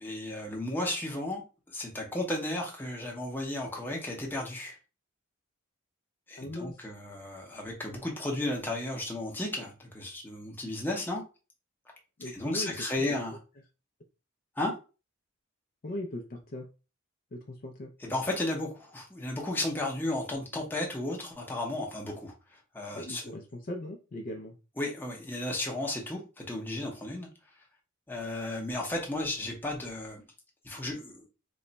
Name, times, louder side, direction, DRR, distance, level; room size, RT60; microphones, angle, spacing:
voice 1, 0.0-1.4 1.7-4.8 6.3-11.2 12.2-13.4 14.6-14.7 18.0-23.3 24.8-27.3 28.1-30.2 30.6-31.2, left 1 dB, 10° left, -1 dB, 0.7 m, -34 dB
voice 2, 6.4-6.9 12.2-12.7 13.0-13.2 15.8-16.7 17.3-17.9 22.9-24.5, left 1 dB, 40° left, 3 dB, 0.4 m, -39 dB
3.1 x 2.2 x 3.9 m, 0.32 s
head